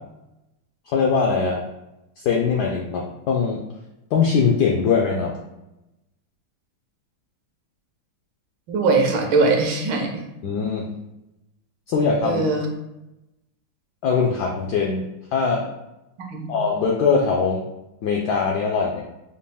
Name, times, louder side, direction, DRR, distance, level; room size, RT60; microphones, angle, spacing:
voice 1, 0.9-1.6 2.2-3.6 4.1-5.3 10.4-10.9 11.9-12.4 14.0-15.0 15.3-15.7 16.5-17.6 18.0-19.0, left 5 dB, 80° left, 0 dB, 0.9 m, -21 dB
voice 2, 8.7-10.2 12.2-12.6 16.2-16.5, right 3 dB, 75° right, 2 dB, 1.4 m, -21 dB
5.2 x 2.2 x 3.4 m, 0.93 s
omnidirectional pair, 2.3 m